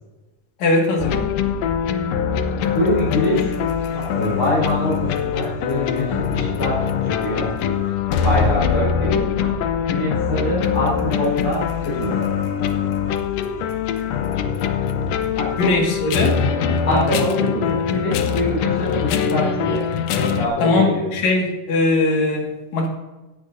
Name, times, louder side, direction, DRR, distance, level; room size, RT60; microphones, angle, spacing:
voice 1, 0.6-1.3 15.6-16.4 20.6-22.9, left 2 dB, 60° left, 1 dB, 3.0 m, -20 dB
sound 1, 1.0-20.5, left 7 dB, 75° left, 1.5 m, -23 dB
voice 2, 2.7-3.5 3.9-7.5 8.2-9.6 9.9-12.3 15.4-15.7 16.9-19.8 20.2-21.1, left 1 dB, 40° left, -8 dB, 5.2 m, -24 dB
16.5 x 10.0 x 2.6 m, 1.1 s
omnidirectional pair, 3.8 m